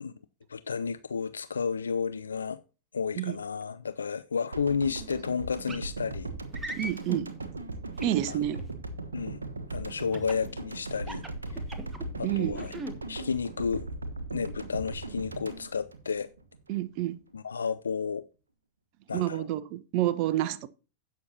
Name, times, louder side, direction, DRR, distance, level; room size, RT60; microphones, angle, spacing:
voice 1, 0.5-2.6 2.9-6.3 8.3-8.4 9.1-9.4 9.7-11.6 12.2-12.7 13.1-13.9 14.3-16.3 17.3-18.3 19.1-19.5, left 6 dB, 70° left, 0.4 m, -32 dB
sound 1, 4.5-16.7 17.0-17.1, right 2 dB, 75° right, 1.2 m, -39 dB
sound 2, 5.7-5.9 6.5-7.2 8.0-8.6 10.1-10.5 11.0-12.0 12.5-12.9, right 1 dB, 10° right, 1.4 m, -38 dB
voice 2, 6.8-7.3 8.0-8.6 12.2-12.6 16.7-17.2 19.1-20.7, right 13 dB, 45° right, 0.7 m, -29 dB
16.0 x 6.3 x 2.8 m
figure-of-eight pair, 90°, 0 cm